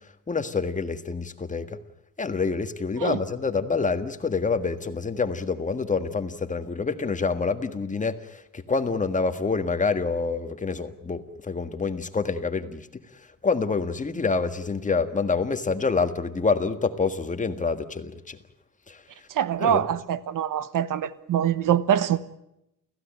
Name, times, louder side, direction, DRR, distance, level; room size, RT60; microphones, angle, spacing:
voice 1, 0.3-1.8 2.2-12.8 13.4-18.4 18.9-19.0 19.6-19.8, left 4 dB, 25° left, 1.7 m, -27 dB
voice 2, 19.3-22.2, right 10 dB, 85° right, 1.3 m, -24 dB
29.0 x 16.0 x 9.1 m
wide cardioid pair, 140°, 31 cm